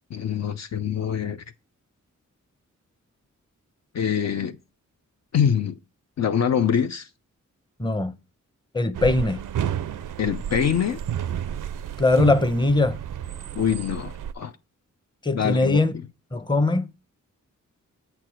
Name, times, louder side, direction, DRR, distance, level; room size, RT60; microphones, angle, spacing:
voice 1, 0.1-1.4 3.9-4.6 5.3-5.8 6.2-7.1 10.2-11.0 13.5-14.5 15.3-16.1, left 8 dB, 55° left, 0.5 m, -24 dB
voice 2, 7.8-8.1 8.7-9.4 12.0-13.0 15.2-15.9 16.3-16.9, left 2 dB, 15° left, 0.7 m, -21 dB
sound 1, 8.9-14.3, right 9 dB, 80° right, 0.5 m, -31 dB
7.7 x 4.6 x 4.9 m
wide cardioid pair, 80°, 31 cm